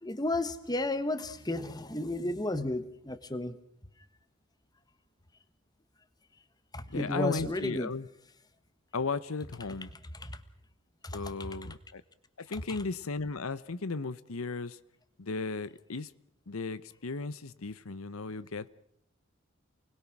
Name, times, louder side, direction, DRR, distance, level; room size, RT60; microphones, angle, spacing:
voice 1, 0.0-3.5 6.7-7.9 10.2-10.4 11.0-11.2 12.7-12.8, left 2 dB, 20° left, 1.4 m, -33 dB
voice 2, 6.9-8.1 8.9-9.9 11.1-12.0 12.4-14.8 15.2-16.1 16.5-18.7, left 4 dB, 80° left, 0.9 m, -35 dB
29.0 x 20.5 x 6.1 m
head